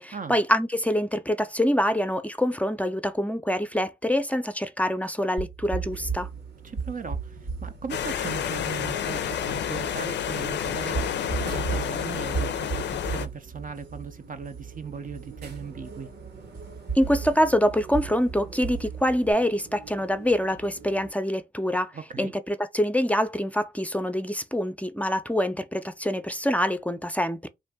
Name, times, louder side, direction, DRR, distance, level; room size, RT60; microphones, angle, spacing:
voice 1, 0.0-6.3 17.0-27.5, equal, 10° left, 0.5 m, -25 dB
sound 1, 5.4-19.3, right 5 dB, 85° right, 1.2 m, -36 dB
sound 2, 5.8-21.1, right 4 dB, 65° right, 0.9 m, -49 dB
voice 2, 6.6-16.1 21.9-22.3, right 6 dB, 50° right, 0.5 m, -38 dB
sound 3, 7.9-13.3, left 9 dB, 80° left, 0.4 m, -29 dB
2.6 x 2.5 x 3.5 m
supercardioid pair, 45°, 18 cm